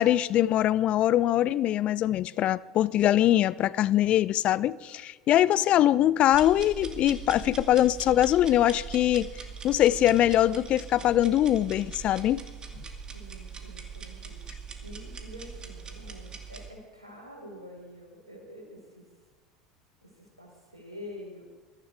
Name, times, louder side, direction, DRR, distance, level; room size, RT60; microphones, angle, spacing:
voice 1, 0.0-9.3 9.6-12.4, left 12 dB, 45° left, 0.5 m, -23 dB
sound 1, 6.3-16.7, right 5 dB, 30° right, 2.3 m, -42 dB
voice 2, 13.1-19.1 20.0-21.4, left 1 dB, 90° right, 4.7 m, -47 dB
21.5 x 14.0 x 4.8 m
figure-of-eight pair, 70°, 3 cm